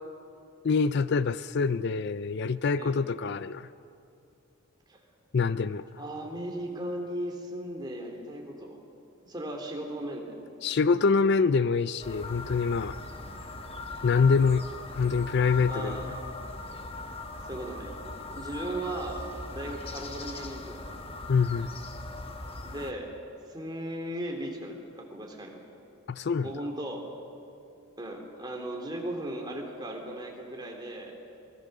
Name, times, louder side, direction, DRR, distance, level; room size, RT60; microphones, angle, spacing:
voice 1, 0.6-3.7 5.3-5.9 10.6-13.0 14.0-14.7 14.9-16.0 21.3-21.7 26.1-26.5, left 5 dB, 50° left, 15 dB, 0.4 m, -25 dB
voice 2, 2.7-3.3 4.9-5.0 6.0-8.8 9.2-10.4 15.7-16.3 17.5-17.9 18.3-19.2 19.5-20.9 22.6-23.1 23.5-25.6 26.4-27.0 28.0-31.1, right 1 dB, 20° right, 1 dB, 3.0 m, -37 dB
sound 1, 12.0-22.9, left 2 dB, 25° left, 1.2 m, -40 dB
26.0 x 21.0 x 6.7 m, 2.7 s
head